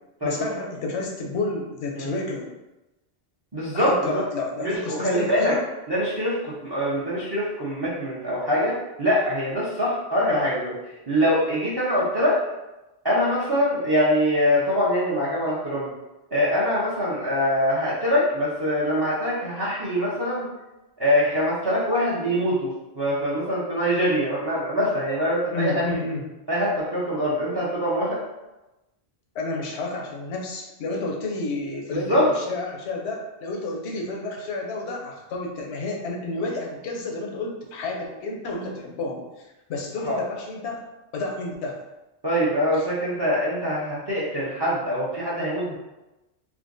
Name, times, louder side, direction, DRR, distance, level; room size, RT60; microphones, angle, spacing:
voice 1, 0.2-2.5 3.7-5.6 25.5-26.2 29.3-39.2 39.7-40.8 41.1-41.8 42.7-42.8, left 2 dB, 80° left, 0 dB, 0.9 m, -30 dB
voice 2, 3.5-4.2 4.6-5.5 5.9-10.8 11.1-12.4 13.0-15.9 16.3-20.5 21.0-25.8 26.5-28.2 31.9-32.3 40.0-40.2 42.2-45.7, equal, 25° right, -8 dB, 0.6 m, -23 dB
3.5 x 2.8 x 2.6 m, 1.0 s
omnidirectional pair, 1.1 m